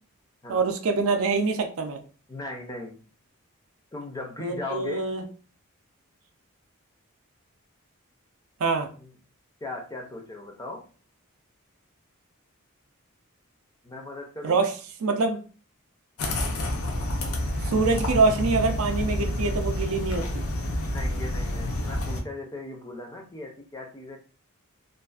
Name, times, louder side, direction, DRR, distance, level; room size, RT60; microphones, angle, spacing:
voice 1, 0.5-2.0 4.4-5.2 8.6-8.9 14.4-14.7 15.0-15.4 17.6-20.4, right 4 dB, 70° right, 6 dB, 0.4 m, -25 dB
voice 2, 2.3-3.0 3.9-5.1 8.9-9.1 9.6-10.9 13.8-14.6 20.9-24.2, left 2 dB, 15° left, 1 dB, 0.4 m, -38 dB
sound 1, 16.2-22.2, left 1 dB, 75° left, 0.5 m, -28 dB
2.5 x 2.4 x 2.3 m, 0.37 s
head